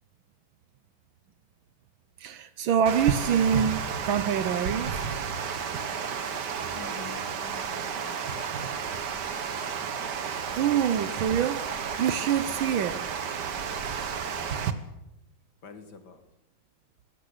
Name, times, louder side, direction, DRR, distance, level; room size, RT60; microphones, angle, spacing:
voice 1, 2.2-3.8 4.1-5.0 10.6-13.0, right 8 dB, 75° right, 1.6 m, -26 dB
Water, 2.9-14.7, right 6 dB, 55° right, 1.8 m, -32 dB
voice 2, 6.7-8.2 11.0-11.2 15.6-16.2, left 4 dB, 55° left, 2.5 m, -46 dB
19.5 x 17.0 x 8.1 m
omnidirectional pair, 2.2 m